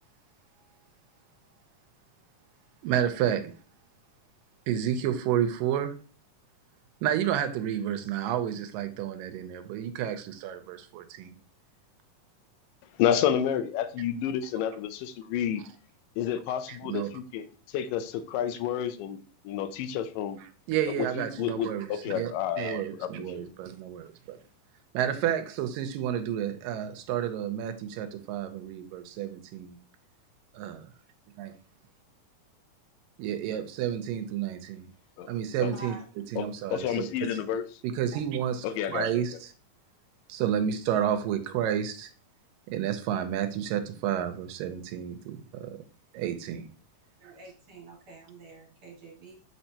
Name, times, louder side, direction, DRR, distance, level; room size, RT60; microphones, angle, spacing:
voice 1, 2.8-3.5 4.7-5.9 7.0-11.3 16.7-17.1 20.7-22.3 22.6-24.4 24.9-29.8 30.5-30.9 31.4-31.5 33.2-34.9 35.3-36.0 36.3-37.4 37.8-39.5 40.3-42.1 42.7-45.8 46.1-46.7 47.2-47.3, right 10 dB, 90° right, 2.3 m, -30 dB
voice 2, 13.0-15.6 16.2-17.4 17.7-19.2 19.5-20.4 21.0-23.5 35.2-35.3 35.6-35.8 36.4-37.6 38.6-39.2, left 9 dB, 85° left, 2.2 m, -30 dB
voice 3, 35.7-36.0 38.1-38.2 47.2-49.4, right 2 dB, 50° right, 2.0 m, -47 dB
7.8 x 4.4 x 2.8 m
omnidirectional pair, 3.9 m